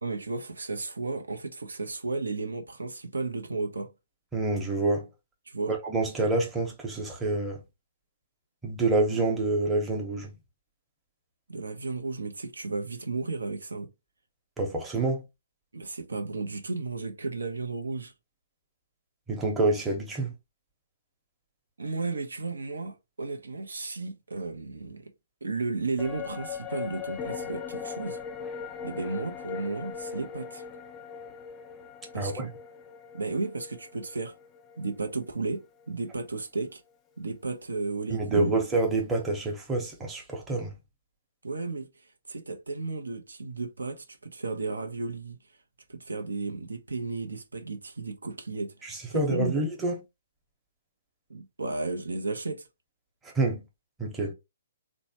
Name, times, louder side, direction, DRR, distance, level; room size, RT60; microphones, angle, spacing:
voice 1, 0.0-3.9 5.5-5.7 11.5-13.9 15.7-18.1 21.8-25.1 25.4-28.2 28.8-30.6 32.1-32.5 33.1-34.4 34.8-36.8 37.2-38.6 41.4-41.9 42.3-45.4 45.9-49.5 51.3-52.7, right 3 dB, 85° right, 0.6 m, -34 dB
voice 2, 4.3-5.1 5.7-7.6 8.6-10.3 14.6-15.2 19.3-20.3 32.1-32.5 38.1-40.7 48.8-49.9 53.2-53.6 54.0-54.3, right 2 dB, 10° right, 0.8 m, -27 dB
sound 1, 26.0-35.5 35.8-35.9, left 6 dB, 20° left, 0.4 m, -40 dB
3.1 x 2.1 x 2.8 m
hypercardioid pair, 135°, 0 cm